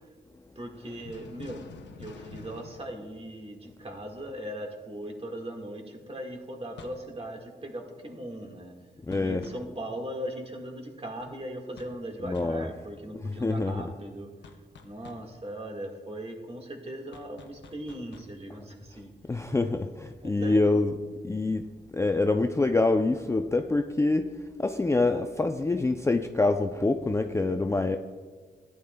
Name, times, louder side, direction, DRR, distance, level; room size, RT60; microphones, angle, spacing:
voice 1, 0.5-8.7 9.1-19.4 20.2-20.7, right 1 dB, 35° right, 1 dB, 1.6 m, -39 dB
sound 1, 1.1-3.9 6.8-7.1 9.1-9.7 11.8-12.1 12.3-12.6 14.4-15.3 17.1-18.4, left 5 dB, 85° left, 0.8 m, -49 dB
voice 2, 9.1-9.4 12.2-12.7 13.4-13.8 19.3-20.9 21.2-21.7 21.9-24.3 24.6-28.0, left 2 dB, 15° left, 5 dB, 0.4 m, -25 dB
14.0 x 9.5 x 2.2 m, 1.5 s
cardioid pair, 75°, 18 cm